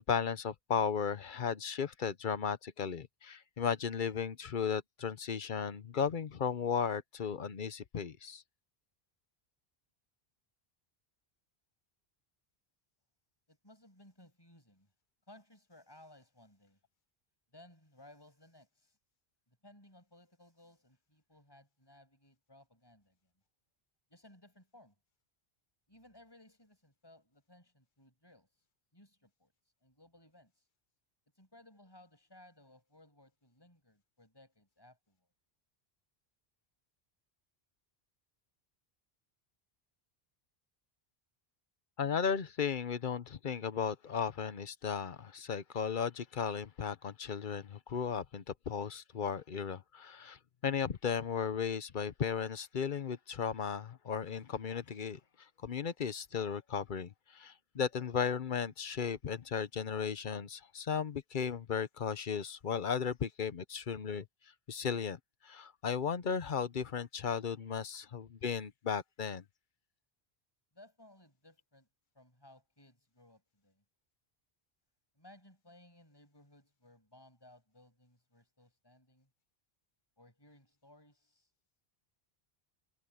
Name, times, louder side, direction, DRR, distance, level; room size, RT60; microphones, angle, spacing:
voice 1, 0.0-8.4 42.0-55.2 55.6-64.2 64.7-69.4, left 7 dB, 55° left, 1.0 m, -35 dB
voice 2, 13.5-14.9 15.3-16.8 17.5-19.0 19.5-23.2 24.1-25.0 25.9-28.5 28.9-29.5 29.8-30.7 31.4-35.3 70.7-71.9 72.1-73.8 75.2-79.3 80.2-81.5, left 1 dB, 25° left, 6.9 m, -61 dB
omnidirectional pair, 1.0 m